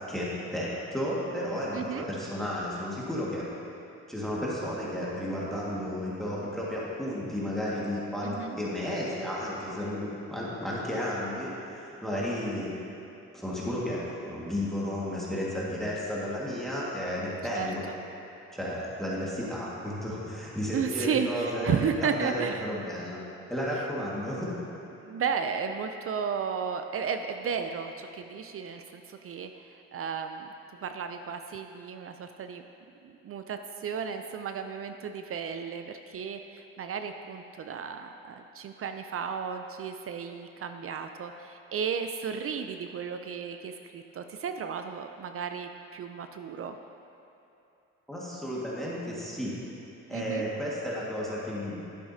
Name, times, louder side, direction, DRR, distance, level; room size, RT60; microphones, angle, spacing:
voice 1, 0.1-3.5 4.1-12.8 13.3-17.8 18.5-23.2 23.5-24.5 48.1-49.5 50.1-51.8, equal, ahead, -7 dB, 1.8 m, -33 dB
voice 2, 1.7-2.1 8.2-8.6 17.5-17.7 20.7-22.6 25.0-30.5 30.8-32.6 33.0-46.8 50.1-50.5, right 6 dB, 50° right, 7 dB, 0.5 m, -34 dB
11.0 x 8.5 x 2.8 m, 2.9 s
cardioid pair, 90°, 30 cm